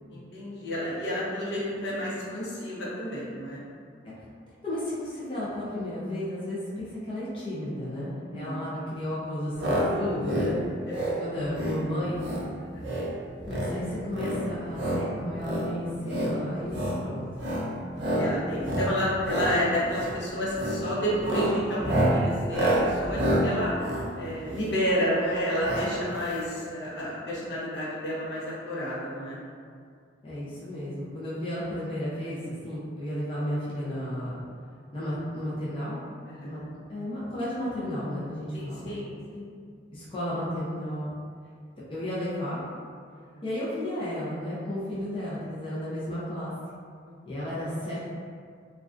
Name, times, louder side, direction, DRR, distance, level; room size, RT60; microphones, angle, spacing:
voice 1, 0.1-3.6 8.1-8.7 10.8-11.2 12.6-12.8 18.2-23.7 24.2-29.4 36.3-36.6 38.5-39.5 43.2-43.4 47.0-47.3, equal, 70° left, -7 dB, 0.6 m, -30 dB
voice 2, 4.6-10.5 11.2-12.2 13.5-17.5 30.2-34.5 34.9-36.0 36.4-36.6 36.9-39.0 39.9-41.1 41.8-42.6 43.4-46.5 47.3-48.1, left 1 dB, 30° left, -9 dB, 0.5 m, -33 dB
sound 1, 9.6-9.9 10.1-10.5 10.9-11.2 11.5-11.8 12.2-12.4 12.8-13.1 13.4-13.7 14.1-15.0 15.4-15.7 16.0-16.3 16.7-17.0 17.4-17.7 18.0-18.3 18.6-18.9 19.2-19.5 19.9-20.1 20.5-20.8 21.2-24.8 25.6-25.9 26.2-26.3 26.4-26.5, right 1 dB, 75° right, 0.5 m, -28 dB
2.4 x 2.2 x 2.4 m, 2.2 s
head